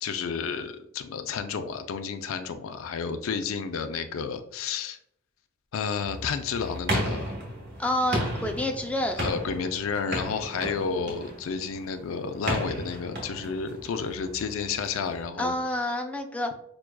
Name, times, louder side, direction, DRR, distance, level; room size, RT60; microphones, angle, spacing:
voice 1, 0.0-5.0 5.7-7.3 9.2-15.6, left 5 dB, 85° left, 8 dB, 0.4 m, -31 dB
sound 1, 6.0-15.2, right 1 dB, 55° right, 1.2 m, -34 dB
voice 2, 7.8-9.2 15.4-16.5, left 1 dB, 5° left, 3 dB, 0.3 m, -28 dB
5.9 x 2.3 x 2.2 m, 0.72 s
head